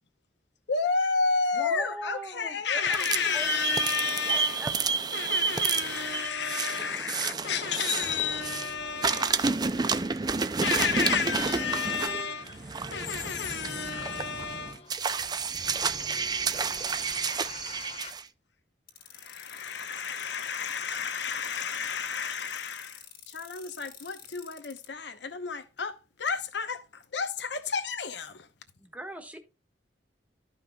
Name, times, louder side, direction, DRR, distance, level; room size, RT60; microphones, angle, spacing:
voice 1, 0.7-4.6 5.1-9.5 10.6-14.9 19.0-28.5, left 5 dB, 70° left, 0.9 m, -31 dB
voice 2, 1.5-3.1 3.3-5.8 28.8-29.4, right 1 dB, 10° right, 1.3 m, -42 dB
sound 1, 2.9-8.7 9.0-18.2, right 5 dB, 25° right, 0.4 m, -30 dB
voice 3, 5.8-6.8 8.1-18.1, left 3 dB, 35° left, 0.9 m, -48 dB
sound 2, 18.9-24.9, left 10 dB, 55° left, 2.1 m, -48 dB
13.5 x 5.6 x 2.3 m
head